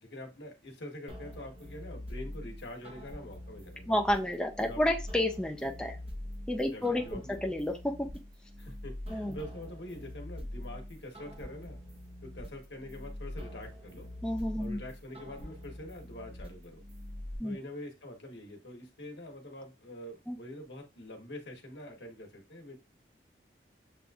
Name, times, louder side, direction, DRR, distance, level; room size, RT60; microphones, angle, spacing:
voice 1, 0.0-3.9 4.6-4.8 6.7-7.4 8.6-11.8 12.2-14.1 14.6-16.8 17.4-22.8, left 1 dB, 85° left, 2 dB, 1.1 m, -45 dB
sound 1, 1.1-17.4, left 1 dB, 35° right, 0.7 m, -44 dB
voice 2, 3.9-6.0 6.5-7.9 9.1-9.4 14.2-14.8 17.4-17.6 20.3-20.4, left 1 dB, 5° left, 1 dB, 0.4 m, -30 dB
7.0 x 2.5 x 2.3 m, 0.28 s
head